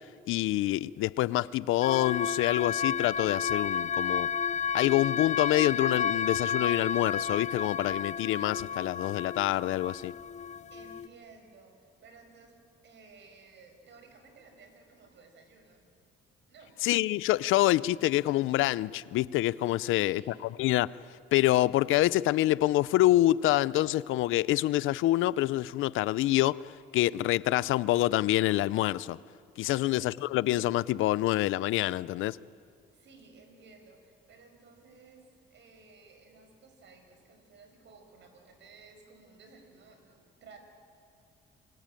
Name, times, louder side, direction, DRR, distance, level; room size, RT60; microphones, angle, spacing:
voice 1, 0.3-4.3 4.7-10.1 16.8-20.2 20.6-21.0 21.3-29.2 29.6-32.4, left 16 dB, 90° left, 0.6 m, -26 dB
sound 1, 1.8-11.1, left 7 dB, 35° left, 0.6 m, -32 dB
voice 2, 10.7-15.9 16.5-16.8 19.8-20.5 29.7-29.9 32.9-40.6, right 4 dB, 65° right, 6.0 m, -55 dB
27.0 x 24.0 x 9.1 m
cardioid pair, 90°, 20 cm